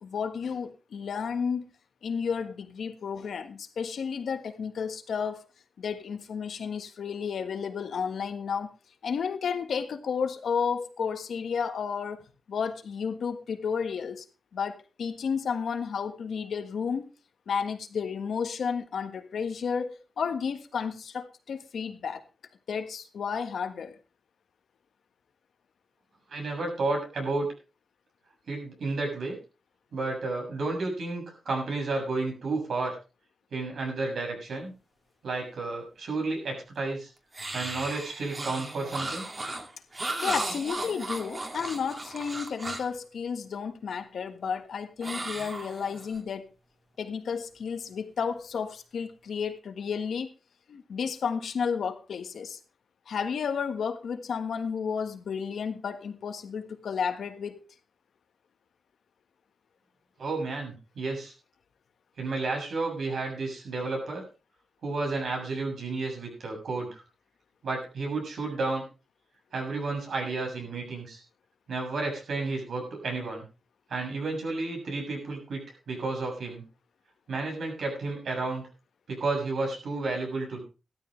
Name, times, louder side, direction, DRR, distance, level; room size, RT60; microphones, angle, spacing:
voice 1, 0.0-1.7 2.0-5.4 5.8-8.7 9.0-14.2 14.5-17.1 17.5-22.2 22.7-24.0 40.2-46.5 47.0-50.3 50.7-52.6 53.1-57.6, left 6 dB, 80° left, 1.5 m, -32 dB
voice 2, 26.3-27.5 28.5-29.4 29.9-33.0 33.5-34.7 35.2-37.1 37.5-39.3 60.2-61.3 62.2-64.2 64.8-67.0 67.6-68.8 69.5-71.2 71.7-73.5 73.9-76.7 77.3-78.6 79.1-80.6, right 3 dB, 80° right, 7.0 m, -31 dB
sound 1, 37.3-43.0 45.0-46.2, right 2 dB, 35° right, 2.5 m, -35 dB
15.5 x 13.0 x 3.3 m
wide cardioid pair, 95°, 0 cm